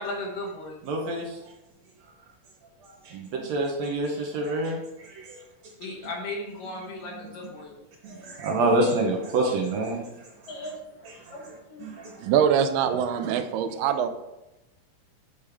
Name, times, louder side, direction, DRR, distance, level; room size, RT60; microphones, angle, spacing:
voice 1, 0.0-0.8 5.8-7.7 8.1-8.4 9.3-9.5 10.5-12.0 13.1-13.2, left 2 dB, 80° left, -2 dB, 2.8 m, -37 dB
voice 2, 0.8-1.4 3.1-5.4 7.1-7.2 8.0-10.0 11.3-11.4 11.8-12.2, right 2 dB, 70° right, 0 dB, 1.8 m, -27 dB
voice 3, 12.2-14.1, right 8 dB, 85° right, 9 dB, 2.3 m, -23 dB
8.2 x 5.3 x 3.4 m, 0.97 s
omnidirectional pair, 3.9 m